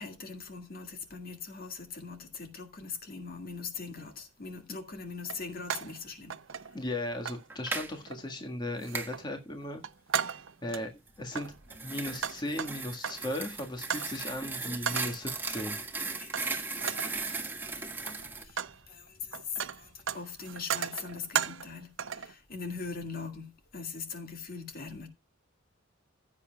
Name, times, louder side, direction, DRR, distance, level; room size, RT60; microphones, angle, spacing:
voice 1, 0.0-6.8 16.2-17.4 17.8-17.9 18.4-25.1, left 4 dB, 45° left, 2.0 m, -42 dB
sound 1, 4.0-4.1 5.2-6.0 6.3-6.9 7.2-7.5 8.1-8.4 8.8-9.3 9.6-10.9 11.3-13.3 13.9-14.2 14.8-15.2 16.3-16.5 16.8-17.2 17.9-18.8 19.1-21.7 22.0-22.3, right 8 dB, 70° right, 0.7 m, -36 dB
voice 2, 6.7-9.8 10.6-10.9 11.2-11.5 11.8-15.8, left 1 dB, 20° left, 1.7 m, -36 dB
sound 2, 7.5-7.9 8.9-9.1 11.3-18.4, right 3 dB, 10° right, 1.7 m, -37 dB
16.0 x 8.3 x 2.3 m
head